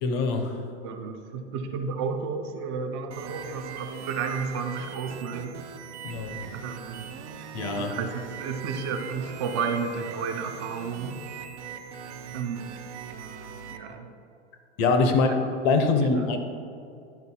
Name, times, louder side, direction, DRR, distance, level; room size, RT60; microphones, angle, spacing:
voice 1, 0.0-0.6 6.0-6.4 7.5-8.0 14.8-15.3 15.6-16.4, left 3 dB, 30° left, 6 dB, 0.5 m, -23 dB
voice 2, 0.8-5.6 6.5-7.1 7.8-11.2 12.3-12.7 13.7-14.1 15.3-15.4 16.1-16.3, right 5 dB, 25° right, 6 dB, 0.4 m, -32 dB
sound 1, 3.1-13.8, right 6 dB, 85° right, 0.8 m, -40 dB
11.0 x 4.5 x 4.1 m, 2.5 s
supercardioid pair, 170°, 34 cm